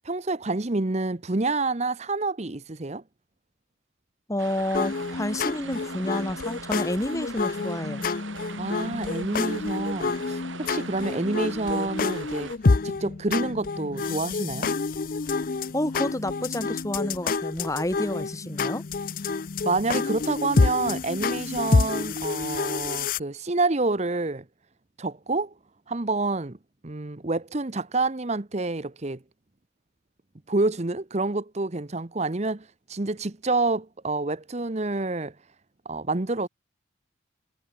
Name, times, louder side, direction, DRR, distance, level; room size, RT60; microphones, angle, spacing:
voice 1, 0.0-3.0 8.6-10.4 10.7-12.6 12.8-14.7 19.6-24.4 25.0-25.5 25.9-26.6 26.8-29.2 30.5-35.3 35.8-36.5, right 3 dB, 35° right, 0.9 m, -28 dB
voice 2, 4.3-8.1 15.7-18.8, left 1 dB, 15° left, 2.1 m, -29 dB
sound 1, 4.4-12.6, right 4 dB, 90° right, 3.8 m, -41 dB
sound 2, 4.7-23.2, left 4 dB, 45° left, 0.5 m, -28 dB
head